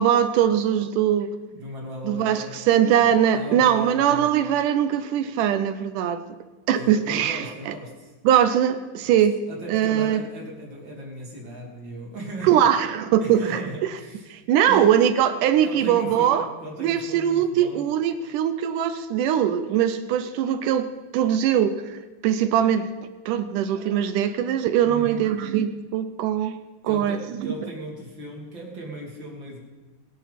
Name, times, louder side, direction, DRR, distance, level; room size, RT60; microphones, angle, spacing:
voice 1, 0.0-1.3 2.0-6.2 6.7-7.7 8.2-9.4 9.7-10.2 12.4-13.6 14.3-16.5 16.8-22.9 23.3-26.6 26.8-27.2 27.6-27.7, right 9 dB, 75° right, 11 dB, 2.0 m, -21 dB
voice 2, 1.5-2.6 3.3-4.3 6.7-8.1 9.0-9.1 9.5-12.7 13.2-14.3 14.6-15.0 15.6-17.9 24.8-25.3 26.8-29.6, right 1 dB, 35° right, -2 dB, 3.1 m, -37 dB
23.0 x 10.5 x 4.2 m, 1.2 s
omnidirectional pair, 4.2 m